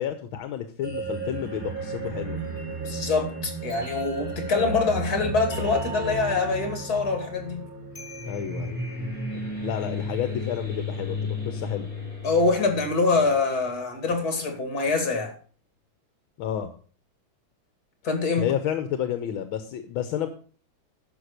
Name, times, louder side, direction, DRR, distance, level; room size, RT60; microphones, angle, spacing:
voice 1, 0.0-2.4 8.3-8.8 9.3-11.9 16.4-16.7 18.4-20.3, left 10 dB, 80° left, 1.6 m, -30 dB
sound 1, 0.8-13.8, equal, 20° left, 4.0 m, -33 dB
voice 2, 2.8-7.6 12.2-15.3 18.0-18.5, left 3 dB, 50° left, 3.0 m, -25 dB
11.0 x 6.0 x 6.5 m
omnidirectional pair, 2.2 m